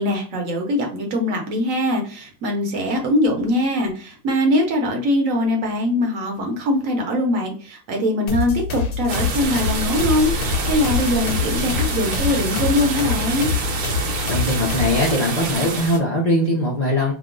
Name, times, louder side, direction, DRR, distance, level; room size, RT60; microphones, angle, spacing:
voice 1, 0.0-13.5, left 1 dB, 65° right, 2 dB, 1.1 m, -22 dB
sound 1, 8.3-15.1, left 5 dB, 65° left, 1.0 m, -26 dB
sound 2, 9.1-16.0, right 3 dB, 90° right, 1.2 m, -26 dB
voice 2, 14.3-17.1, left 1 dB, 50° left, -5 dB, 0.5 m, -20 dB
2.9 x 2.0 x 3.6 m, 0.39 s
omnidirectional pair, 1.6 m